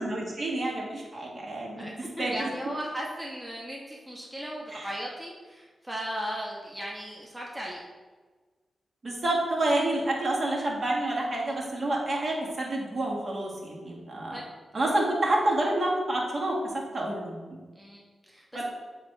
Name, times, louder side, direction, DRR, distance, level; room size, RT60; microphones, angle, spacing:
voice 1, 0.0-2.5 4.7-4.9 9.0-14.4 14.7-17.6 18.5-18.6, right 1 dB, 50° right, -3 dB, 1.8 m, -29 dB
voice 2, 1.8-7.8 14.3-14.5 14.7-14.9 17.7-18.4, equal, 10° right, -3 dB, 1.2 m, -37 dB
7.5 x 3.1 x 4.5 m, 1.4 s
cardioid pair, 50°, 0 cm